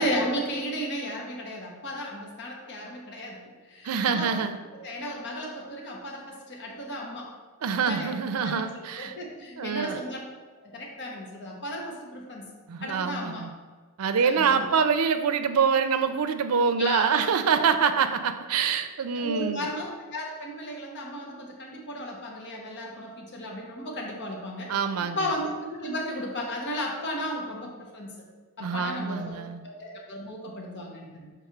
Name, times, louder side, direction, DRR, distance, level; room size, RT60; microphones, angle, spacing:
voice 1, 0.0-4.3 4.7-7.3 7.7-10.2 10.6-12.5 12.8-13.5 14.2-14.7 16.8-17.3 19.1-24.7 25.0-28.3 28.6-29.4 29.6-31.3, equal, 55° left, 0 dB, 1.0 m, -34 dB
voice 2, 3.8-4.6 7.6-9.1 9.6-10.0 12.7-13.5 14.0-19.7 24.7-25.2 28.6-29.6, right 6 dB, 80° right, 8 dB, 0.5 m, -25 dB
5.8 x 3.5 x 5.9 m, 1.4 s
head